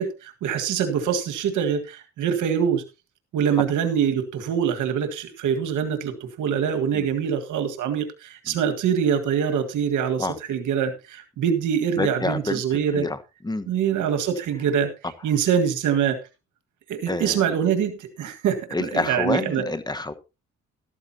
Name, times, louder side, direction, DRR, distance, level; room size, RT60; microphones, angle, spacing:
voice 1, 0.0-2.8 3.3-13.1 13.7-14.9 15.2-16.2 16.9-19.7, right 8 dB, 80° right, 7 dB, 1.8 m, -24 dB
voice 2, 12.0-13.2 13.4-13.7 17.1-17.4 18.7-20.1, left 2 dB, 15° left, 11 dB, 1.3 m, -28 dB
13.0 x 13.0 x 2.9 m, 0.28 s
cardioid pair, 90°, 30 cm